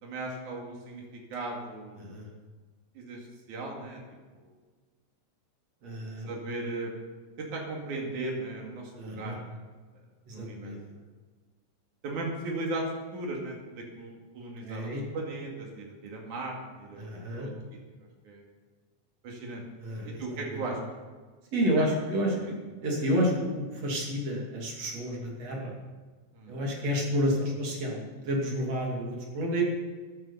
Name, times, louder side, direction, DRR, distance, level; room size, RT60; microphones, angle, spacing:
voice 1, 0.0-1.0 1.3-2.0 3.0-4.0 4.3-4.5 6.3-7.0 7.4-9.6 10.3-10.7 12.0-12.9 13.1-17.5 18.3-18.4 19.2-19.6 20.1-20.8 21.8-21.9 26.3-26.6, right 2 dB, 75° right, 0 dB, 3.8 m, -37 dB
voice 2, 2.0-2.3 5.8-6.3 8.9-9.4 10.3-10.8 14.6-15.0 17.0-17.5 19.8-20.2 20.5-20.6 21.5-22.5 22.8-25.7 26.5-29.6, equal, 55° right, -2 dB, 3.6 m, -30 dB
14.0 x 11.5 x 5.6 m, 1.4 s
omnidirectional pair, 3.5 m